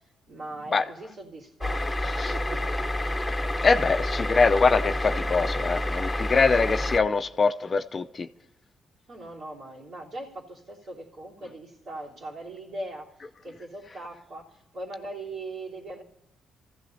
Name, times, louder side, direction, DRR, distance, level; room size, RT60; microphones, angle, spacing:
voice 1, 0.0-3.0 9.1-13.1 13.4-16.0, right 2 dB, 55° right, -3 dB, 3.4 m, -40 dB
sound 1, 1.6-7.0, left 1 dB, 15° left, 0.9 m, -28 dB
voice 2, 3.6-8.3, left 4 dB, 35° left, 9 dB, 0.5 m, -23 dB
26.5 x 15.0 x 2.8 m, 0.86 s
cardioid pair, 90°, 0 cm